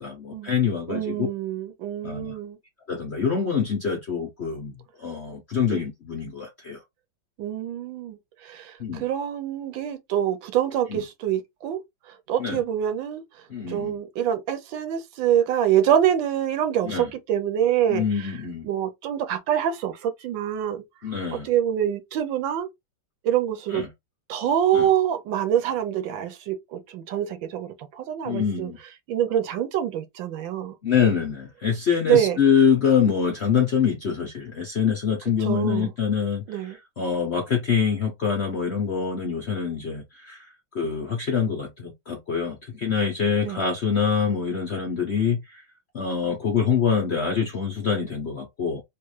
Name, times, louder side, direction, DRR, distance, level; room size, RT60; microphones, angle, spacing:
voice 1, 0.0-1.3 2.0-2.3 2.9-4.7 5.0-6.8 8.8-9.0 10.9-11.0 12.4-12.6 13.5-13.9 16.8-17.1 17.9-18.7 21.0-21.5 23.7-23.9 24.7-24.9 28.2-28.8 30.8-40.5 40.7-45.6 45.9-48.8, left 6 dB, 60° left, 0.7 m, -25 dB
voice 2, 0.9-2.6 5.7-5.8 7.4-11.8 12.1-13.2 13.7-18.3 18.6-20.8 21.4-22.7 23.2-23.8 24.3-28.7 29.1-30.7 32.1-32.4 35.4-35.9 36.5-36.8 43.4-43.6, right 10 dB, 75° right, 1.4 m, -25 dB
3.5 x 2.5 x 3.1 m
omnidirectional pair, 2.1 m